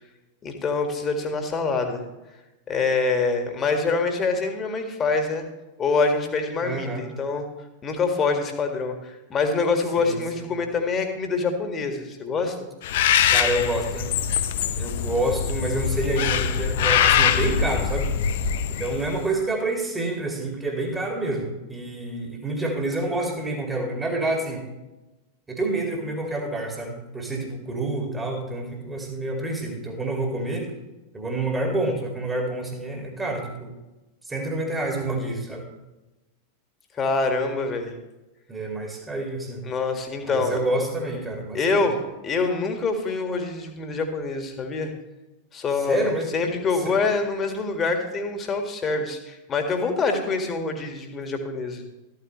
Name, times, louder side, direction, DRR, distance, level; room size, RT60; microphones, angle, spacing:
voice 1, 0.4-2.0 2.7-5.5 5.8-7.5 7.8-12.6 37.0-37.9 39.6-40.6 41.5-44.9 45.5-51.8, left 4 dB, 25° left, 4 dB, 1.9 m, -25 dB
voice 2, 6.6-7.1 10.0-10.5 13.3-14.1 14.8-18.1 18.7-24.6 25.5-30.7 31.1-33.7 34.3-35.7 38.5-39.6 40.2-41.9 45.9-46.3 46.8-46.9, right 2 dB, 15° right, 1 dB, 2.3 m, -28 dB
Bird, 12.8-19.2, left 8 dB, 55° left, 0.8 m, -23 dB
13.5 x 13.5 x 3.2 m, 1.0 s
figure-of-eight pair, 90°, 0 cm